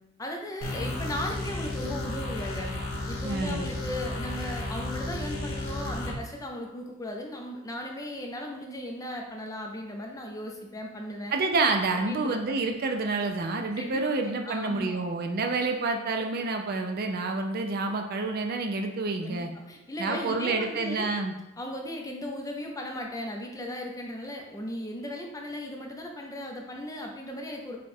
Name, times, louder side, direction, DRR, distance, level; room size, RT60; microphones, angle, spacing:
voice 1, 0.2-2.7 3.1-11.3 11.9-12.6 13.8-15.0 19.2-21.1 21.6-27.8, left 1 dB, 15° left, 1 dB, 0.5 m, -37 dB
sound 1, 0.6-6.2, left 2 dB, 80° left, 0.8 m, -33 dB
voice 2, 3.2-3.7 11.3-19.5 20.0-21.3, right 3 dB, 50° right, 4 dB, 0.4 m, -28 dB
5.0 x 2.3 x 4.3 m, 0.95 s
head